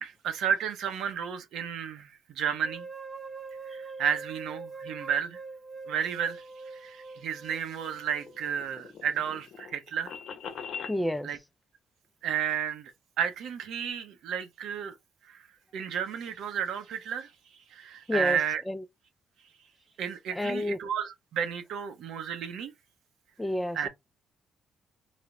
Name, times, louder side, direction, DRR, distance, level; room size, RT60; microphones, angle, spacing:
voice 1, 0.0-2.9 3.7-5.4 5.9-6.4 6.7-10.1 11.2-11.4 12.2-12.9 13.2-14.9 15.3-15.4 15.7-17.3 17.7-18.6 20.0-22.7 23.7-23.9, right 8 dB, 80° right, 0.7 m, -32 dB
sound 1, 2.6-8.6, right 4 dB, 20° right, 1.0 m, -43 dB
sound 2, 7.9-11.0, left 6 dB, 65° left, 0.7 m, -42 dB
voice 2, 10.9-11.3 18.1-18.8 20.3-20.8 23.4-23.9, left 1 dB, 10° left, 0.3 m, -30 dB
3.3 x 2.0 x 3.6 m
cardioid pair, 90°, 0 cm